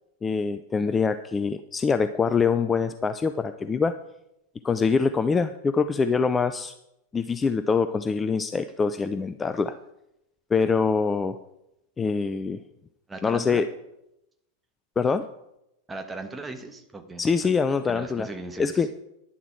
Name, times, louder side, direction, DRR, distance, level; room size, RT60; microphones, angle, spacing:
voice 1, 0.2-3.9 4.6-6.7 7.1-9.7 10.5-11.4 12.0-12.6 13.2-13.7 15.0-15.2 17.2-18.3 18.6-18.9, left 5 dB, 15° left, 11 dB, 0.5 m, -24 dB
voice 2, 13.1-13.6 15.9-17.5 17.9-18.9, right 2 dB, 10° right, 5 dB, 1.4 m, -38 dB
11.0 x 11.0 x 4.5 m, 0.85 s
figure-of-eight pair, 90°, 0 cm